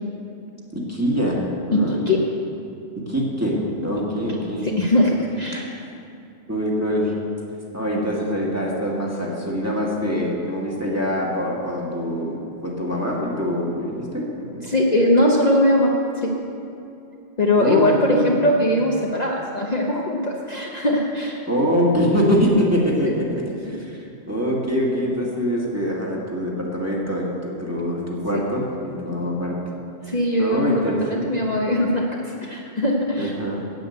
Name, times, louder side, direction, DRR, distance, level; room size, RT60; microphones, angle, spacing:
voice 1, 0.7-2.0 3.1-4.7 5.5-5.7 6.5-7.1 7.7-12.4 12.6-14.3 17.6-18.3 21.5-24.0 24.3-29.6 30.4-31.5 33.2-33.6, equal, 15° right, -3 dB, 1.8 m, -24 dB
voice 2, 1.7-2.2 4.6-5.7 14.6-16.3 17.4-21.4 23.0-23.1 28.3-28.4 30.1-33.3, left 1 dB, 40° left, -2 dB, 1.0 m, -21 dB
9.3 x 8.6 x 7.9 m, 2.7 s
omnidirectional pair, 1.2 m